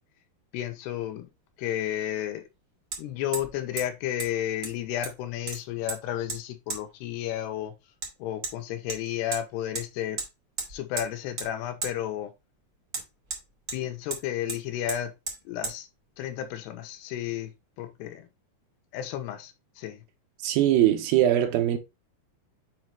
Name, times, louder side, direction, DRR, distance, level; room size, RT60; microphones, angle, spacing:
voice 1, 0.5-1.3 1.6-2.4 3.0-7.7 8.2-10.2 10.7-12.3 13.7-15.1 15.5-15.9 16.2-17.5 17.8-18.3 18.9-20.0, left 11 dB, 85° left, 2.8 m, -32 dB
Hammer, 1.0-1.1 2.9-3.0 3.3-3.5 3.8-3.9 4.2-4.3 4.6-5.2 5.5-6.0 6.3-6.4 6.7-6.8 8.0-8.1 8.4-8.5 8.9-9.4 9.7-9.9 10.2-10.3 10.6-11.1 11.4-11.5 11.8-11.9 12.9-13.8 14.1-14.2 14.5-14.6 14.9-15.0 15.3-15.4 15.6-15.8, right 3 dB, 40° right, 1.4 m, -34 dB
voice 2, 20.4-21.8, right 12 dB, 80° right, 2.2 m, -21 dB
7.4 x 3.1 x 4.5 m
omnidirectional pair, 4.8 m